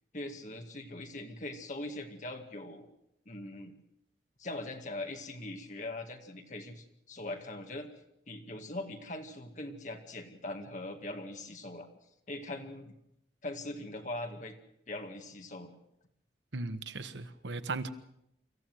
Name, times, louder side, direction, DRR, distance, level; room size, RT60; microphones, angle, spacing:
voice 1, 0.1-2.9 3.3-3.7 4.4-7.9 8.3-11.9 12.3-12.9 13.4-14.6 14.9-15.7, left 2 dB, 45° left, 5 dB, 2.1 m, -41 dB
voice 2, 16.5-17.9, right 3 dB, 85° right, 11 dB, 1.2 m, -37 dB
25.0 x 14.5 x 7.8 m, 0.78 s
head